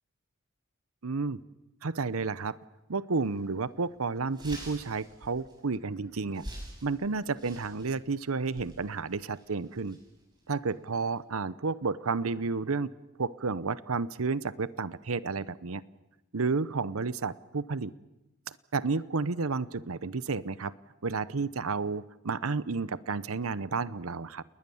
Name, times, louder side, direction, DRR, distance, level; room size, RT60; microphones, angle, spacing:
voice 1, 1.0-1.4 1.8-2.6 2.9-6.4 6.8-10.0 10.5-12.9 13.2-15.8 16.3-17.9 18.7-20.7 21.0-24.4, right 4 dB, 90° right, 17 dB, 0.8 m, -31 dB
sound 1, 3.2-3.4 3.8-3.9 4.1-11.2, right 1 dB, 20° right, 7.6 m, -48 dB
29.0 x 20.5 x 7.1 m, 0.97 s
head